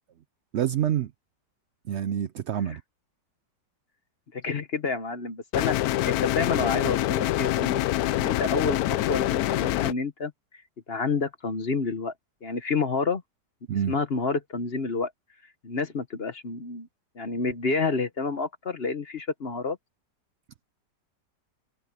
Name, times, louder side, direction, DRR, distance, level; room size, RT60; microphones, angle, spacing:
voice 1, 0.5-1.1 1.9-2.8 13.7-14.0, right 10 dB, 85° right, 0.6 m, -27 dB
voice 2, 4.3-5.8 6.0-7.8 8.2-10.3 10.9-12.1 12.4-13.2 13.9-15.1 15.6-16.9 17.2-19.8, left 4 dB, 40° left, 1.1 m, -29 dB
sound 1, 5.5-9.9, left 15 dB, 70° left, 0.9 m, -25 dB
omnidirectional pair, 1.9 m